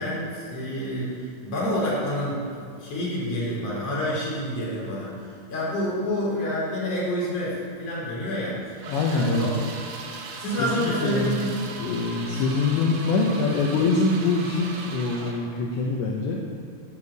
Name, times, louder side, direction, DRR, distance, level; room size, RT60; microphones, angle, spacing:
voice 1, 0.0-8.8 9.1-9.5 10.4-11.5 13.7-13.8, equal, 35° left, -6 dB, 4.3 m, -28 dB
sound 1, 8.8-15.5, right 3 dB, 90° right, 4.3 m, -38 dB
voice 2, 8.9-9.5 10.6-11.4 11.8-16.4, left 3 dB, 75° left, -1 dB, 2.9 m, -24 dB
8.8 x 8.6 x 8.5 m, 2.5 s
omnidirectional pair, 5.8 m